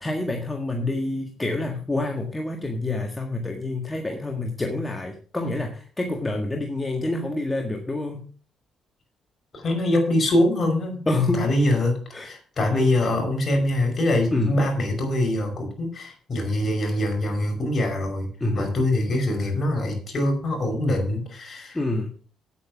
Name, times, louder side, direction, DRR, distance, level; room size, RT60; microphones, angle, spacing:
voice 1, 0.0-8.2 11.1-11.5 12.1-12.3 13.0-13.1 14.3-14.7 18.4-18.7 21.7-22.1, left 2 dB, 15° left, 2 dB, 1.7 m, -27 dB
voice 2, 9.5-11.0 11.4-12.0 12.2-18.3 18.5-21.8, left 1 dB, 45° left, 3 dB, 5.2 m, -23 dB
9.5 x 8.4 x 5.9 m, 0.41 s
cardioid pair, 90°, 0 cm